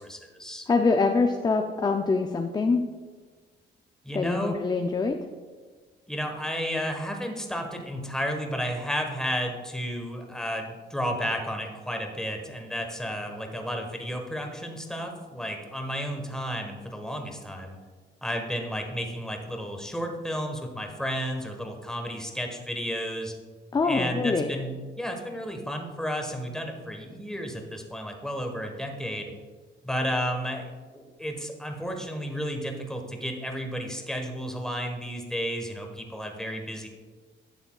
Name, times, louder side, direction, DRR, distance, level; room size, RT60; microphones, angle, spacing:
voice 1, 0.0-0.7 4.0-4.6 6.1-17.8 18.2-23.3 23.8-29.3 29.8-36.9, equal, 5° left, 3 dB, 1.2 m, -32 dB
voice 2, 0.7-2.8 4.1-5.2 23.7-24.5, left 4 dB, 20° left, 5 dB, 0.5 m, -24 dB
11.5 x 6.8 x 2.3 m, 1.4 s
cardioid pair, 90°, 20 cm